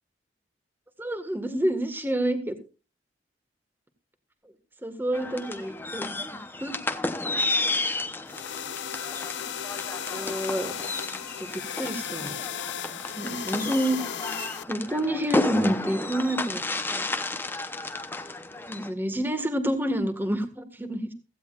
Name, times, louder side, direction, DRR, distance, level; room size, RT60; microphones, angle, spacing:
voice 1, 1.0-2.5 4.8-6.2 6.6-6.8 10.1-10.7 11.0-12.3 13.2-14.0 14.2-17.1 18.7-21.1, right 1 dB, 10° right, 8 dB, 1.7 m, -29 dB
sound 1, 5.1-18.9, left 2 dB, 10° left, 0.9 m, -32 dB
sound 2, 8.3-14.6, left 9 dB, 75° left, 0.6 m, -35 dB
16.5 x 15.5 x 2.5 m, 0.32 s
head